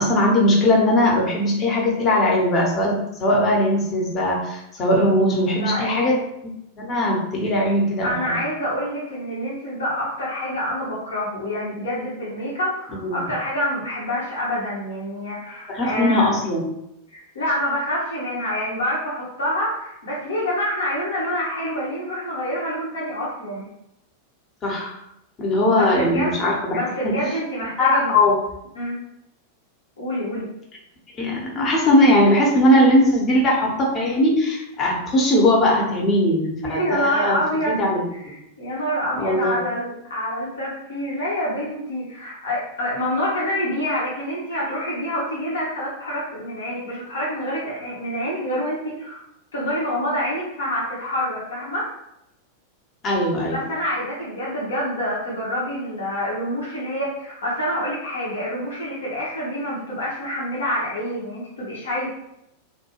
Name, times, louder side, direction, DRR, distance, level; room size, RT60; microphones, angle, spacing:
voice 1, 0.0-6.2 6.8-8.4 13.0-13.2 15.7-16.7 24.6-25.0 25.4-26.8 27.0-27.1 27.8-28.4 31.2-37.4 37.8-38.0 39.2-39.6 53.0-53.6, left 1 dB, 30° left, -2 dB, 0.8 m, -19 dB
voice 2, 5.5-6.2 8.0-16.3 17.1-23.7 25.7-26.3 26.7-28.1 28.7-29.0 30.0-30.5 36.6-37.9 38.2-49.2 49.5-51.9 53.5-62.1, equal, 65° left, -6 dB, 0.7 m, -27 dB
2.3 x 2.2 x 2.9 m, 0.81 s
figure-of-eight pair, 90°, 0 cm